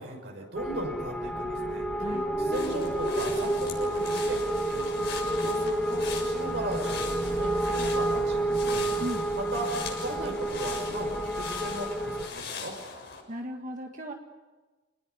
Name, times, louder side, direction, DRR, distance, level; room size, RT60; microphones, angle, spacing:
voice 1, 0.0-2.1 2.4-4.4 4.7-8.9 9.3-12.7, right 1 dB, 70° right, 1 dB, 6.0 m, -37 dB
sound 1, 0.5-12.3, right 1 dB, 5° left, 2.1 m, -30 dB
sound 2, 2.5-13.2, left 5 dB, 65° left, 6.9 m, -40 dB
voice 2, 13.3-14.1, equal, 45° right, 2 dB, 1.9 m, -36 dB
28.0 x 19.5 x 9.7 m, 1.3 s
head